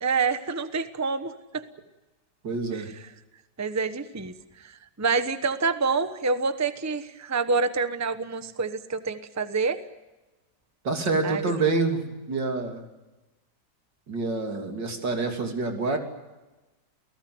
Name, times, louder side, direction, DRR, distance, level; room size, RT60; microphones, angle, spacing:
voice 1, 0.0-1.6 2.7-3.1 3.6-9.8 11.2-11.5, right 4 dB, 10° right, 11 dB, 0.9 m, -27 dB
voice 2, 2.4-2.9 10.8-12.0 12.3-12.8 14.1-16.0, right 3 dB, 85° right, 4 dB, 3.8 m, -27 dB
29.5 x 18.0 x 7.9 m, 1.1 s
omnidirectional pair, 1.9 m